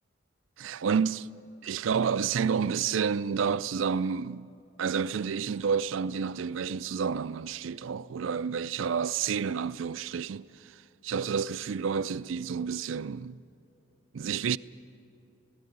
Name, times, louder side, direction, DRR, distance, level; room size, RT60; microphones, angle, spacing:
voice 1, 0.6-1.3 1.6-4.5 4.8-10.7 11.0-13.4 14.1-14.6, right 6 dB, 85° right, 0.4 m, -30 dB
17.0 x 16.5 x 9.4 m
head